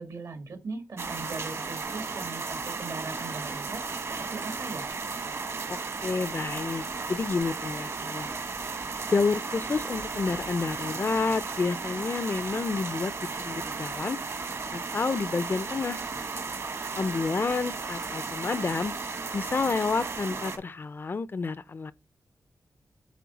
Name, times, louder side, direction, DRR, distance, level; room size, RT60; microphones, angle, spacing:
voice 1, 0.0-3.8 4.2-4.9, right 3 dB, 70° right, 1.6 m, -39 dB
sound 1, 1.0-20.6, right 4 dB, 55° right, 1.2 m, -35 dB
voice 2, 6.0-6.8 7.1-8.3 9.1-13.1 13.4-14.2 14.7-16.0 17.0-18.9 19.3-21.9, left 4 dB, 40° left, 0.4 m, -29 dB
9.3 x 3.9 x 3.9 m
wide cardioid pair, 140°, 6 cm